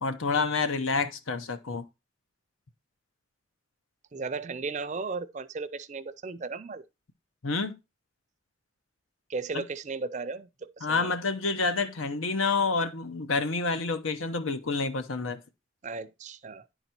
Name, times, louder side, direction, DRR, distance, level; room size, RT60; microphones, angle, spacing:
voice 1, 0.0-1.9 7.4-7.8 9.5-9.6 10.8-15.4, left 4 dB, 90° left, 0.8 m, -28 dB
voice 2, 4.1-6.8 9.3-10.5 10.8-11.1 15.8-16.6, right 4 dB, 35° right, 0.5 m, -35 dB
10.5 x 4.0 x 4.4 m
head